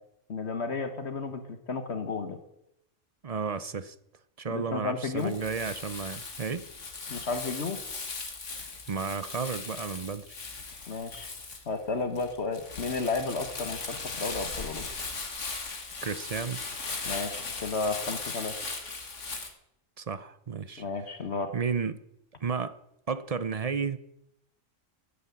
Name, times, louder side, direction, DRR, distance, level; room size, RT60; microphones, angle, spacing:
voice 1, 0.3-2.4 4.5-5.3 7.1-7.8 10.9-11.3 11.7-14.9 17.0-18.6 20.8-21.5, left 4 dB, 60° left, 1.5 m, -32 dB
voice 2, 3.2-4.0 4.4-6.7 8.9-10.3 16.0-16.6 20.0-20.8 21.5-22.0 22.4-22.8 23.1-24.0, right 5 dB, 40° right, 0.6 m, -32 dB
Crumpling crinkling, 5.2-19.5, left 4 dB, 80° left, 2.2 m, -38 dB
13.5 x 9.7 x 8.4 m
omnidirectional pair, 1.3 m